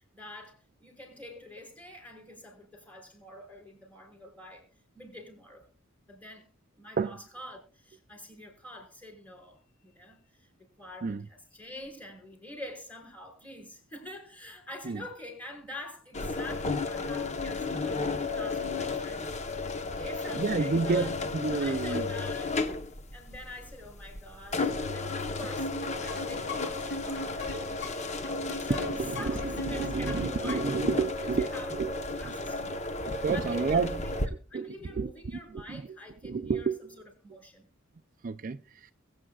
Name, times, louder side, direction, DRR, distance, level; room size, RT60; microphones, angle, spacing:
voice 1, 0.0-4.7 4.9-5.7 6.1-6.4 6.7-19.3 20.0-21.1 21.5-22.6 22.9-25.7 26.0-28.1 28.6-31.7 32.2-36.9 37.2-37.7, left 1 dB, 10° left, 5.3 m, -46 dB
sound 1, 16.1-34.3, left 3 dB, 35° left, 1.0 m, -33 dB
voice 2, 20.3-22.0 28.7-31.9 32.2-32.4 33.2-34.0 34.5-35.1 35.5-36.0 36.2-36.8 38.2-38.9, right 4 dB, 40° right, 0.4 m, -30 dB
sound 2, 25.6-30.9, left 1 dB, 60° left, 2.8 m, -39 dB
21.5 x 8.8 x 2.3 m
head